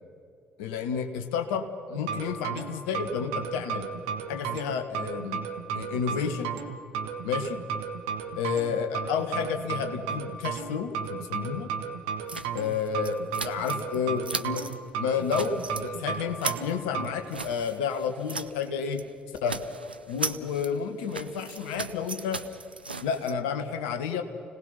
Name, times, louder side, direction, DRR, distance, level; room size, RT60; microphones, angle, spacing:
voice 1, 0.6-3.9 4.3-5.5 5.7-6.5 7.2-7.6 8.3-11.7 12.5-14.7 15.0-19.1 19.4-19.6 20.1-22.5 23.0-24.2, left 7 dB, 65° left, 7 dB, 1.5 m, -31 dB
sound 1, 1.9-17.1, right 7 dB, 70° right, 1.4 m, -34 dB
sound 2, 12.3-14.0 14.2-14.8 15.1-15.9 16.2-18.7 18.9-19.1 19.3-23.3, right 4 dB, 85° right, 0.5 m, -37 dB
29.5 x 18.5 x 5.7 m, 2.6 s
figure-of-eight pair, 45°, 5 cm